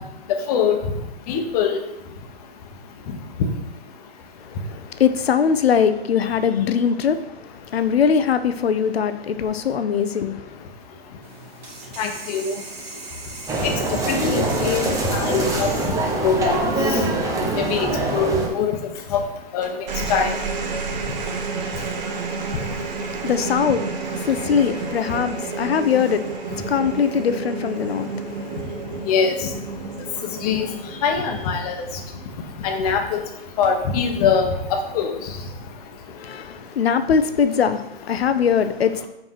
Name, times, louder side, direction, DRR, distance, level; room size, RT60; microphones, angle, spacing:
voice 1, 0.3-0.8 1.3-1.8 12.0-12.5 13.6-13.7 14.1-15.7 16.2-17.0 17.6-17.9 18.1-18.8 19.1-19.2 19.5-19.7 20.1-20.3 29.1-29.5 30.4-30.7 31.0-31.8 32.6-33.2 33.6-35.1, left 6 dB, 40° left, 1.1 m, -22 dB
voice 2, 4.4-10.7 23.1-28.6 36.1-39.1, left 7 dB, 75° left, 0.8 m, -22 dB
sound 1, 11.2-17.2, right 3 dB, 75° right, 1.8 m, -39 dB
sound 2, 13.5-18.5, right 2 dB, 10° right, 0.8 m, -23 dB
sound 3, 19.6-32.2 33.5-33.9, right 4 dB, 45° right, 1.2 m, -31 dB
5.3 x 4.7 x 5.8 m
hypercardioid pair, 135°, 31 cm